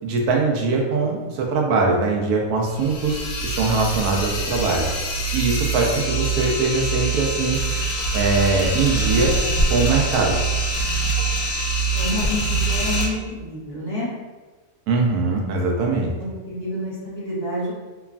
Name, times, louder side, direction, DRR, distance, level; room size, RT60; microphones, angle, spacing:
voice 1, 0.0-4.8 5.3-7.6 8.1-9.3 9.7-10.4 14.9-16.1, right 3 dB, 90° right, 0 dB, 1.1 m, -21 dB
sound 1, 2.7-13.1, right 2 dB, 70° left, 0.9 m, -24 dB
voice 2, 11.9-14.1 16.2-17.7, left 1 dB, 35° right, -13 dB, 0.7 m, -28 dB
3.0 x 2.2 x 2.4 m, 1.3 s
omnidirectional pair, 1.6 m